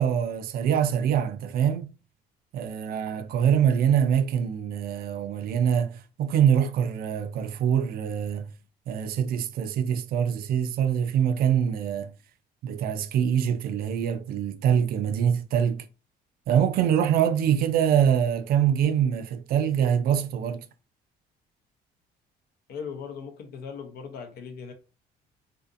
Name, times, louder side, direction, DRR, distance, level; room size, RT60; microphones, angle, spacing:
voice 1, 0.0-1.9 2.5-8.5 8.9-12.1 12.6-15.9 16.5-20.6, right 8 dB, 65° right, 0.4 m, -24 dB
voice 2, 22.7-24.7, left 6 dB, 65° left, 0.6 m, -38 dB
2.5 x 2.4 x 2.5 m
cardioid pair, 110°, 17 cm